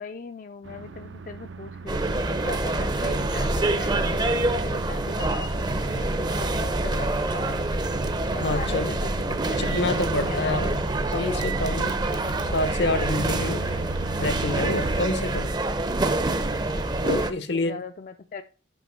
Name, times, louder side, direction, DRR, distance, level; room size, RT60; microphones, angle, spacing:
voice 1, 0.0-7.7 8.3-9.6 10.1-10.7 16.9-18.4, left 4 dB, 45° left, 0.4 m, -39 dB
sound 1, 0.6-15.1, right 4 dB, 80° right, 0.7 m, -38 dB
sound 2, 1.9-17.3, right 2 dB, 20° right, 0.6 m, -26 dB
voice 2, 8.4-8.9 9.6-10.8 11.1-12.0 12.5-13.7 14.2-15.6 17.0-17.8, left 2 dB, 65° left, 0.8 m, -27 dB
6.2 x 5.2 x 6.3 m
head